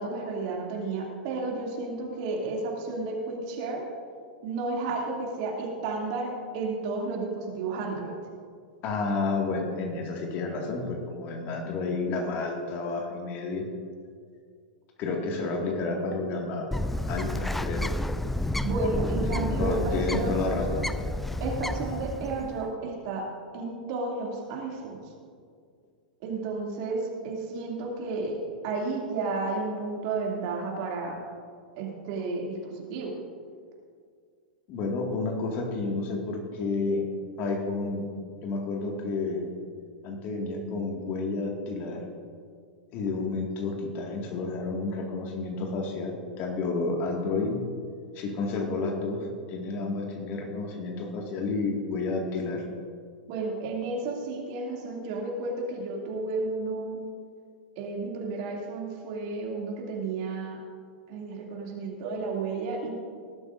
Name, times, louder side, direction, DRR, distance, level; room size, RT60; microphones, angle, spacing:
voice 1, 0.0-3.8 4.4-8.1 18.6-20.4 21.4-23.3 23.5-25.0 26.2-31.2 31.8-33.1 53.3-57.0 57.8-60.6 61.1-62.9, right 3 dB, 45° right, -1 dB, 2.6 m, -32 dB
voice 2, 8.8-13.7 15.0-16.7 17.1-17.9 19.3-20.9 34.7-37.0 37.4-38.0 38.4-39.5 40.0-42.0 42.9-47.6 48.2-52.6, left 3 dB, 40° left, 1 dB, 2.0 m, -30 dB
Bird, 16.7-22.6, left 1 dB, 5° left, 0.3 m, -30 dB
19.0 x 11.5 x 2.6 m, 2.1 s
figure-of-eight pair, 100°, 5 cm